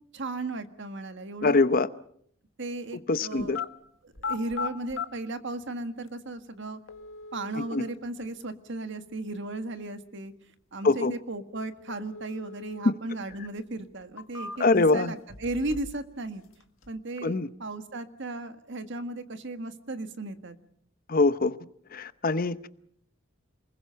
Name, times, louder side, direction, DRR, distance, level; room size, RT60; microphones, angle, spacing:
voice 1, 0.1-1.6 2.6-3.6 4.0-6.8 7.3-10.3 10.7-16.4 16.9-20.6, right 2 dB, 60° right, 9 dB, 1.7 m, -35 dB
voice 2, 1.4-1.9 3.1-3.6 7.6-7.8 10.8-11.1 12.8-12.9 14.6-15.1 17.2-17.5 21.1-21.6 21.9-22.7, left 3 dB, 45° left, 14 dB, 0.8 m, -23 dB
sound 1, 3.4-3.7 4.1-5.1 6.1-6.2 6.9-7.9 11.9-12.9 13.3-13.4 14.0-14.9 15.3-16.0 16.3-16.9, left 5 dB, 75° left, 1.8 m, -38 dB
28.0 x 21.0 x 5.7 m, 0.65 s
head